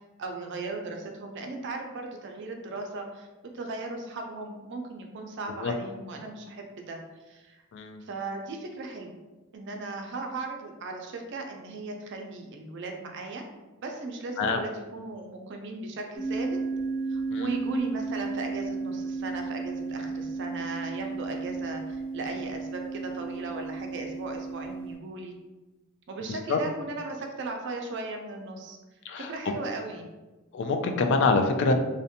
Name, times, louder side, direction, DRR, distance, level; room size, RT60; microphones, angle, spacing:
voice 1, 0.2-3.3 3.5-7.0 7.3-7.6 8.0-9.2 9.5-13.4 13.8-16.6 17.1-25.3 26.1-28.8 29.2-30.1, right 3 dB, 55° right, 3 dB, 0.4 m, -37 dB
sound 1, 16.2-25.0, right 4 dB, 35° left, 0.9 m, -33 dB
voice 2, 29.1-29.5 30.5-31.7, left 4 dB, 55° left, 6 dB, 0.3 m, -25 dB
2.5 x 2.1 x 2.7 m, 1.1 s
head